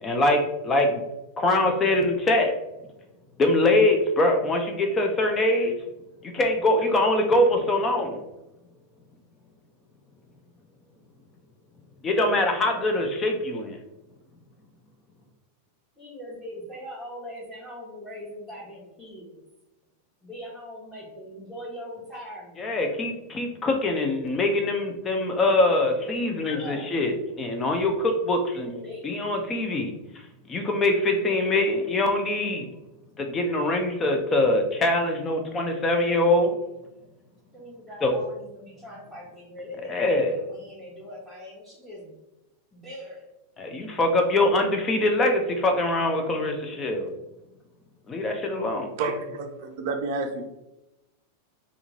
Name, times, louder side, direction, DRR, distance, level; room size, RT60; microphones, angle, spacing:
voice 1, 0.0-1.0 1.4-2.5 3.4-5.7 6.2-8.2 12.0-13.8 22.6-29.9 30.5-32.7 33.2-36.6 38.0-38.1 39.9-40.4 43.6-47.1 48.1-48.9, left 2 dB, 20° left, 4 dB, 0.5 m, -23 dB
voice 2, 16.0-19.4 20.2-22.7 26.4-27.1 28.6-29.1 37.5-42.1 42.7-43.3, left 1 dB, 5° left, -9 dB, 1.0 m, -41 dB
voice 3, 49.0-50.4, right 3 dB, 50° right, 4 dB, 0.5 m, -29 dB
3.6 x 2.5 x 3.0 m, 0.94 s
figure-of-eight pair, 90°, 0 cm